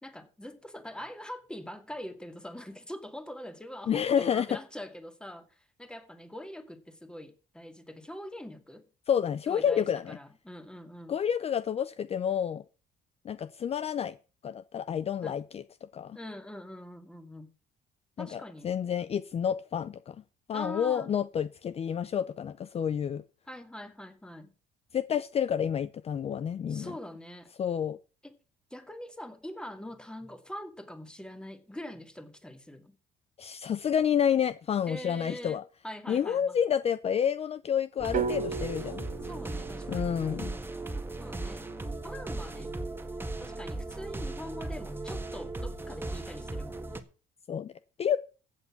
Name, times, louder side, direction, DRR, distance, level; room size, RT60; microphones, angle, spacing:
voice 1, 0.0-8.8 9.5-11.2 15.2-15.4 16.1-17.5 18.2-18.7 20.5-21.1 23.5-24.5 26.7-27.5 28.2-28.4 28.7-33.0 34.9-35.6 35.8-36.6 39.2-40.2 41.2-41.7 42.0-42.7 43.4-47.1, left 1 dB, 5° left, 2.1 m, -43 dB
voice 2, 3.9-4.6 9.1-10.2 11.1-12.6 13.2-14.2 14.4-15.6 15.9-16.2 18.2-20.2 20.5-23.2 24.9-26.9 27.6-28.0 33.4-35.6 36.1-39.1 39.9-40.6 47.5-47.7 48.0-48.2, left 8 dB, 35° left, 0.6 m, -29 dB
sound 1, 38.0-47.0, right 2 dB, 15° right, 1.6 m, -37 dB
sound 2, 38.1-42.2, right 6 dB, 50° right, 2.1 m, -37 dB
15.0 x 8.2 x 5.9 m
cardioid pair, 110°, 17 cm